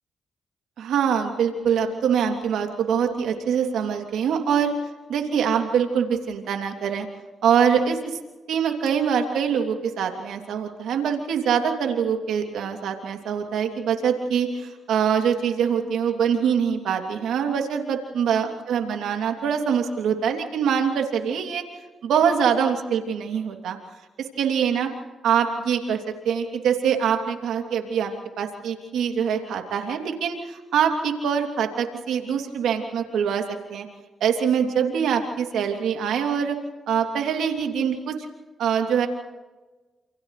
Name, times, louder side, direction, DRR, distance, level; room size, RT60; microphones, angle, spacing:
voice 1, 0.8-4.7 5.1-7.1 7.4-8.2 8.5-21.6 22.0-23.8 24.2-24.9 25.2-26.0 26.2-33.4 33.7-33.9 34.2-36.6 36.9-38.2 38.6-39.1, right 7 dB, 85° right, 3 dB, 3.0 m, -24 dB
29.0 x 28.0 x 3.3 m, 1.2 s
cardioid pair, 60°, 0 cm